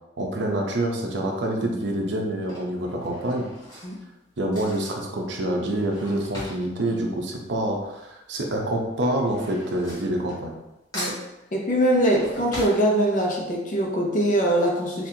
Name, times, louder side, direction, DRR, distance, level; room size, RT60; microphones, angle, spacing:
voice 1, 0.2-3.5 4.4-10.5, right 1 dB, 80° right, 1 dB, 0.7 m, -26 dB
Drawer open or close / Cutlery silverware, 0.9-1.3 2.2-8.0 8.3-10.7 10.9-13.5 13.9-14.0 14.2-14.3, equal, 20° left, 1.2 m, -40 dB
voice 2, 11.5-15.1, right 1 dB, 45° left, 0 dB, 0.7 m, -22 dB
4.2 x 2.5 x 2.7 m, 0.98 s
head